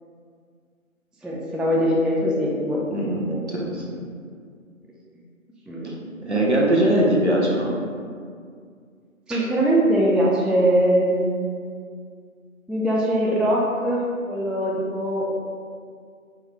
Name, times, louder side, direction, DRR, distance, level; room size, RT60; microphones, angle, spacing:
voice 1, 1.2-2.8 3.2-3.4 5.7-6.4 9.3-11.4 12.7-15.3, right 1 dB, ahead, -5 dB, 0.3 m, -22 dB
voice 2, 3.5-3.8 5.8-5.9 6.3-7.7, right 1 dB, 55° right, -3 dB, 0.6 m, -21 dB
4.5 x 2.0 x 2.9 m, 2.1 s
figure-of-eight pair, 175°, 42 cm